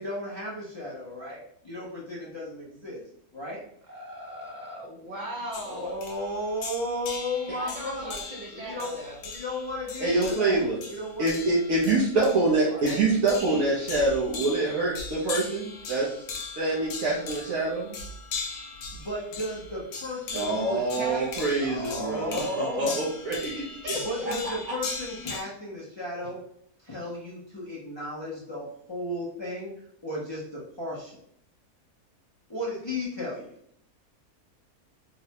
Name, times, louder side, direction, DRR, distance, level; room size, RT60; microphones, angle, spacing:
voice 1, 0.0-3.0 3.3-3.6 5.6-8.2 8.5-9.0 9.2-11.3 11.8-12.0 18.9-21.2 21.6-22.8 23.9-26.4 26.8-29.7 30.0-31.2 32.5-33.5, left 1 dB, 45° left, -6 dB, 0.3 m, -34 dB
voice 2, 3.9-5.9 7.6-9.2 12.7-13.0 13.5-13.6 23.8-24.0, equal, 50° right, -2 dB, 0.5 m, -38 dB
sound 1, 5.5-25.4, left 4 dB, 90° left, 1.2 m, -39 dB
voice 3, 10.0-10.8 11.2-16.2 16.5-17.9 20.3-24.0 24.3-24.5, right 2 dB, 65° right, -5 dB, 1.1 m, -26 dB
3.9 x 2.1 x 2.8 m, 0.67 s
omnidirectional pair, 1.6 m